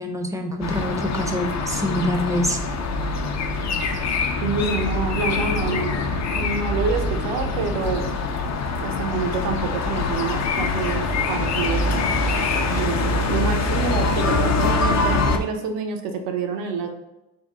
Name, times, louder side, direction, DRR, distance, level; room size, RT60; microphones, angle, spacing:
voice 1, 0.0-2.6, equal, 10° right, 4 dB, 0.5 m, -25 dB
sound 1, 0.6-15.4, left 3 dB, 40° left, 0.5 m, -24 dB
voice 2, 4.4-6.1 6.3-8.2 8.8-12.2 12.7-16.9, right 5 dB, 85° right, 4 dB, 0.7 m, -27 dB
3.7 x 2.1 x 3.6 m, 0.97 s
supercardioid pair, 70°, 42 cm